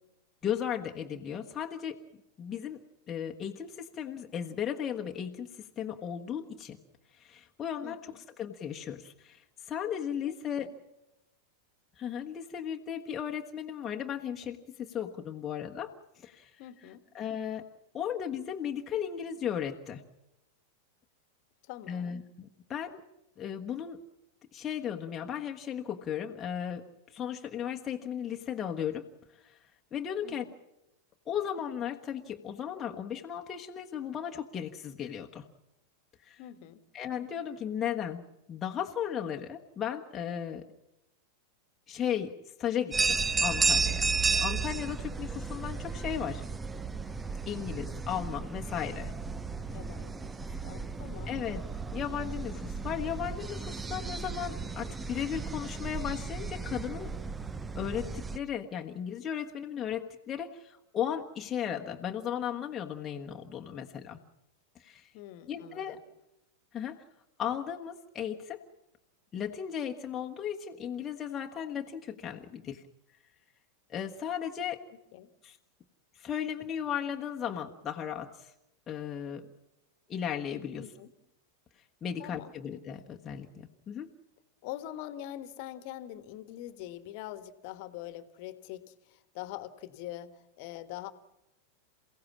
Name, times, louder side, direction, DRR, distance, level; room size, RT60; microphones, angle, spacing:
voice 1, 0.4-2.0 2.4-6.8 7.1-10.7 12.0-16.6 17.1-17.6 17.9-20.0 21.9-23.0 23.4-24.0 24.5-29.0 29.4-29.6 29.9-30.4 31.3-35.5 36.2-36.4 36.9-40.6 41.9-42.3 42.6-46.4 47.5-49.1 51.3-51.6 51.9-57.1 57.7-64.2 64.7-65.1 65.5-66.0 66.7-67.0 67.4-68.6 69.3-72.8 73.9-74.8 75.4-75.6 76.1-78.5 78.9-79.5 80.1-80.8 82.0-84.1, left 9 dB, 25° left, 1 dB, 1.3 m, -36 dB
voice 2, 7.8-8.2 10.2-10.7 16.6-17.0 21.6-22.1 30.2-30.4 36.4-36.8 49.7-50.3 50.6-51.3 65.1-66.0 75.1-75.3 80.8-81.1 82.2-82.5 84.6-91.1, left 13 dB, 45° left, 12 dB, 1.5 m, -44 dB
sound 1, 42.9-58.4, right 4 dB, 15° right, 0.8 m, -33 dB
28.0 x 16.5 x 7.4 m, 0.92 s
figure-of-eight pair, 90°, 0 cm